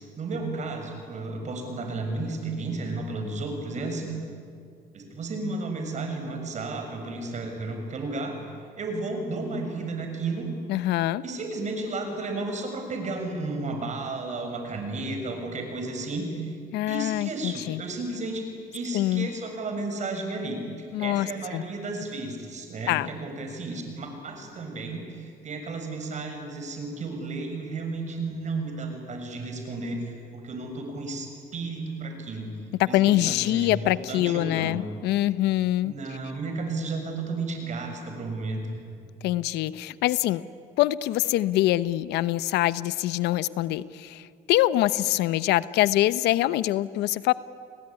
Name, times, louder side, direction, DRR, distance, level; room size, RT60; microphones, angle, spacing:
voice 1, 0.2-4.1 4.9-8.3 8.8-10.5 11.2-16.5 16.9-18.4 18.7-32.5 32.8-34.8 35.8-38.8, right 3 dB, 45° right, 4 dB, 6.6 m, -33 dB
voice 2, 10.7-11.2 16.7-17.8 18.9-19.3 20.9-21.6 22.9-23.1 32.7-35.9 39.2-40.4 40.8-47.3, left 15 dB, 85° left, 17 dB, 0.8 m, -24 dB
30.0 x 20.0 x 9.9 m, 2.3 s
cardioid pair, 110°, 17 cm